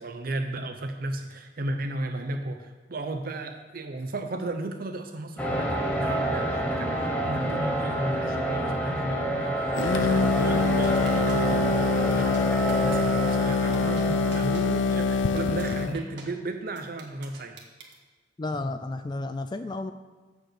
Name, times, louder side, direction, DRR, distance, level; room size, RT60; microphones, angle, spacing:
voice 1, 0.0-17.6, right 2 dB, 50° right, 6 dB, 0.7 m, -34 dB
sound 1, 5.4-15.4, right 1 dB, 10° left, 1.5 m, -28 dB
sound 2, 9.7-16.0, left 4 dB, 90° left, 0.6 m, -25 dB
sound 3, 10.8-11.5 12.1-12.4 12.7-13.0 13.3-13.4 13.7-14.0 14.3-14.6 15.0-15.1 15.4-15.6 15.9-16.2 16.8-17.9, right 5 dB, 65° right, 1.8 m, -45 dB
voice 2, 18.4-19.9, left 2 dB, 25° left, 9 dB, 0.4 m, -32 dB
15.0 x 5.1 x 6.6 m, 1.4 s
head